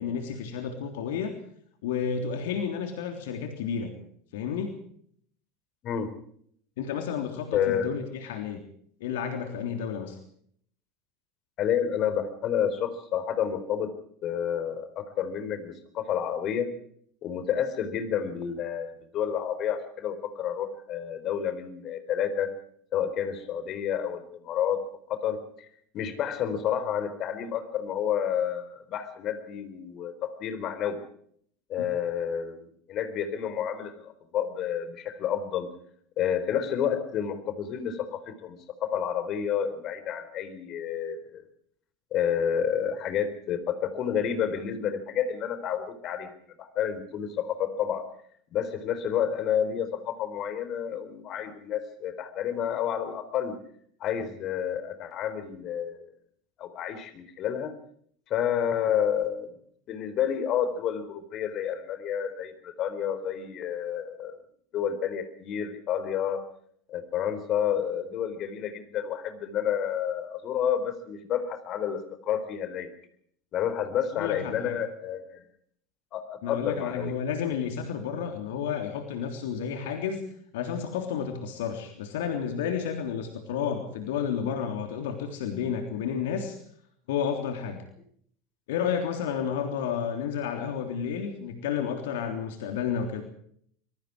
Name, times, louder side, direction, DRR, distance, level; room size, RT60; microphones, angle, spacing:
voice 1, 0.0-1.4 1.8-3.9 4.3-4.8 6.8-8.6 9.0-10.2 74.1-74.8 76.4-80.2 80.5-86.6 87.1-87.8 88.7-93.2, left 7 dB, 65° left, 5 dB, 3.4 m, -31 dB
voice 2, 7.5-7.9 11.6-13.9 14.2-16.7 17.2-22.5 22.9-24.8 25.1-25.7 25.9-31.0 31.7-35.7 36.2-41.4 42.1-46.3 46.6-48.1 48.5-53.6 54.0-56.0 56.6-57.7 58.3-59.5 59.9-64.4 64.7-66.4 66.9-72.9 73.5-75.4 76.1-77.1, left 8 dB, 40° left, 10 dB, 4.2 m, -30 dB
25.5 x 22.5 x 4.8 m, 0.64 s
figure-of-eight pair, 80°, 0 cm